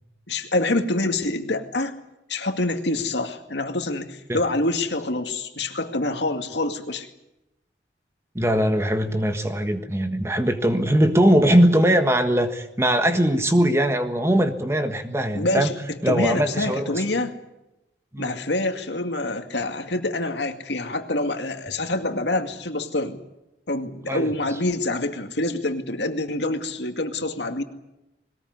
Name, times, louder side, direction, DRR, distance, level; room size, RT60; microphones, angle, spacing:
voice 1, 0.3-2.0 2.3-7.1 15.3-17.3 18.2-23.2 23.7-27.6, left 2 dB, 85° left, 6 dB, 2.2 m, -26 dB
voice 2, 8.3-15.7 16.0-17.0 18.1-18.3 24.1-24.3, equal, 15° right, 7 dB, 1.5 m, -21 dB
21.5 x 19.0 x 9.6 m, 0.92 s
head